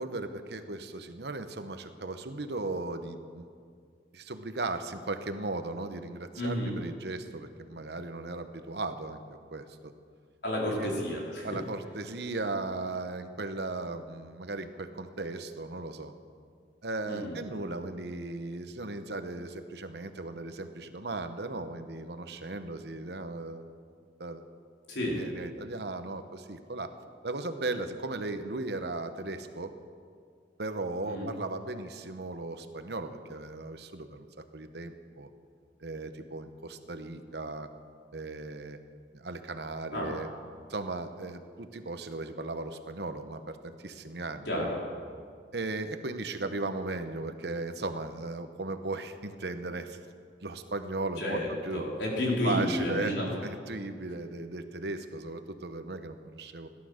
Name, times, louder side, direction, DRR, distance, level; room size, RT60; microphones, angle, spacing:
voice 1, 0.0-3.5 4.1-9.2 9.5-9.9 10.7-10.9 11.4-16.1 16.8-23.7 24.2-24.4 25.2-26.9 27.2-29.7 30.6-34.3 34.5-35.3 35.8-37.7 38.1-38.8 39.1-40.3 40.7-44.5 45.5-50.0 50.4-51.8 52.4-53.1 53.4-56.7, right 2 dB, 65° right, 8 dB, 1.0 m, -37 dB
voice 2, 6.4-6.8 10.4-11.6 17.1-17.4 24.9-25.2 31.1-31.3 39.9-40.1 44.5-44.8 51.2-53.3, left 1 dB, 75° left, -3 dB, 4.2 m, -31 dB
17.0 x 12.0 x 6.5 m, 2.2 s
head